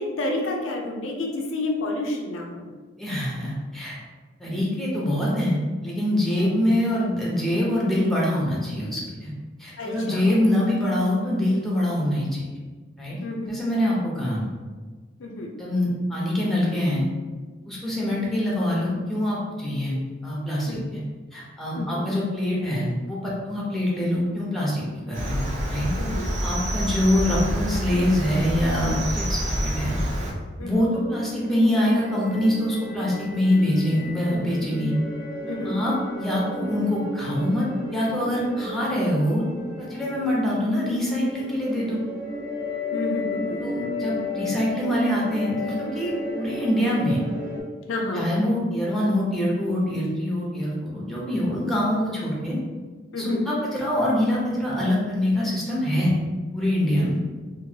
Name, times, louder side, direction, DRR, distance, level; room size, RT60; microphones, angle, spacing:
voice 1, 0.0-2.6 9.8-10.2 13.2-13.5 15.2-15.5 18.0-18.2 20.7-20.8 21.8-22.0 26.0-26.3 30.6-30.9 35.5-35.8 42.9-43.6 47.9-48.3 53.1-53.4, left 2 dB, 75° left, 1 dB, 0.5 m, -30 dB
voice 2, 3.0-4.0 4.4-9.3 9.6-12.4 13.0-13.2 13.5-14.4 15.6-17.1 17.7-19.9 20.2-21.0 21.3-25.4 25.7-25.9 26.4-30.0 30.6-34.9 35.6-39.4 39.8-42.0 43.6-47.2 48.1-52.6 53.2-56.1 56.5-57.2, left 1 dB, ahead, -5 dB, 0.7 m, -24 dB
Cricket, 25.1-30.3, equal, 35° right, 0.5 m, -27 dB
sound 1, 31.1-47.6, left 2 dB, 80° right, 1.0 m, -34 dB
3.0 x 2.5 x 2.8 m, 1.4 s
head